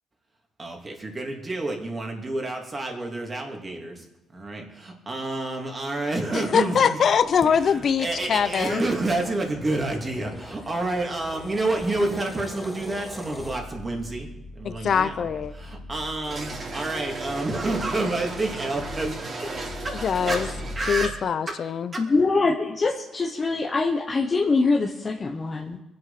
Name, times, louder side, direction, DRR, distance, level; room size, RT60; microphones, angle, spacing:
voice 1, 0.6-4.0 4.3-7.0 7.5-15.2 15.5-21.2 21.9-22.0, right 2 dB, 30° right, 1 dB, 3.1 m, -29 dB
voice 2, 6.3-8.8 14.6-15.5 20.0-20.5 20.9-21.9, left 7 dB, 55° left, 14 dB, 0.8 m, -23 dB
sound 1, 7.1-13.6, left 1 dB, 10° left, 1.4 m, -42 dB
sound 2, 13.4-21.1, left 1 dB, 85° left, 2.9 m, -40 dB
sound 3, 16.2-21.0, right 3 dB, 45° right, 3.8 m, -35 dB
voice 3, 22.0-25.8, left 3 dB, 30° left, 0 dB, 1.2 m, -23 dB
23.0 x 8.0 x 6.0 m, 1.0 s
cardioid pair, 90°, 0 cm